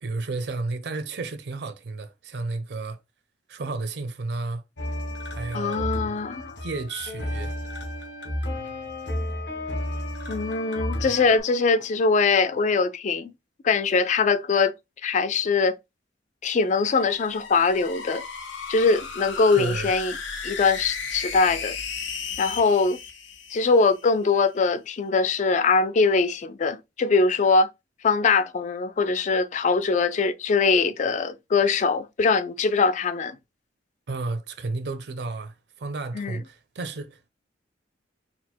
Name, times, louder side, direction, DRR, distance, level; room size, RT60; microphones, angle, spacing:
voice 1, 0.0-3.0 3.5-4.6 5.3-5.9 6.6-7.5 19.6-19.9 34.1-37.3, right 3 dB, 60° right, 0.5 m, -32 dB
sound 1, 4.8-11.4, left 1 dB, 65° left, 1.2 m, -32 dB
voice 2, 5.5-6.5 10.3-13.3 13.6-14.7 15.0-15.7 16.4-18.2 18.7-20.1 20.4-21.8 22.4-23.0 23.5-27.7 28.0-33.4 36.1-36.4, left 4 dB, 40° left, 0.3 m, -22 dB
sound 2, 16.6-24.1, left 5 dB, 90° left, 0.9 m, -35 dB
4.2 x 2.1 x 4.3 m
head